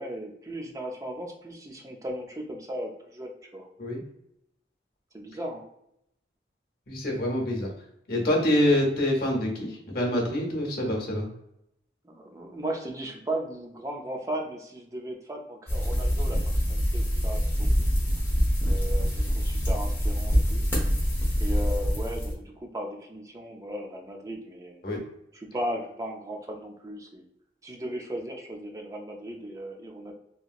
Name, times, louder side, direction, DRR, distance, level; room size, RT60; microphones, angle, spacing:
voice 1, 0.0-3.7 5.1-5.6 12.0-16.4 16.7-17.5 17.8-17.9 18.6-20.7 21.4-24.8 25.3-27.2 27.6-30.1, right 1 dB, 20° right, 2 dB, 0.4 m, -36 dB
voice 2, 6.9-7.7 8.1-11.3 24.8-25.0, left 1 dB, 55° left, -1 dB, 0.8 m, -26 dB
sound 1, 15.7-22.3, equal, 10° left, 0.7 m, -25 dB
2.9 x 2.7 x 2.4 m, 0.78 s
head